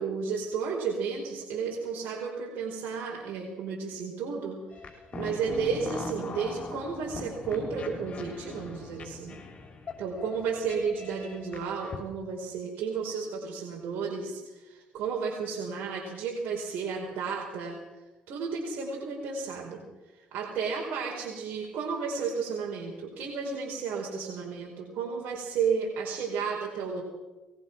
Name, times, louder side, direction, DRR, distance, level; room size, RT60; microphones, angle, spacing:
voice 1, 0.0-4.6 5.1-9.4 10.0-17.7 18.3-19.8 20.3-27.0, right 5 dB, 75° right, -2 dB, 4.8 m, -32 dB
sound 1, 4.7-12.0, left 3 dB, 40° left, 6.0 m, -41 dB
21.5 x 20.0 x 6.1 m, 1.1 s
cardioid pair, 100°, 3 cm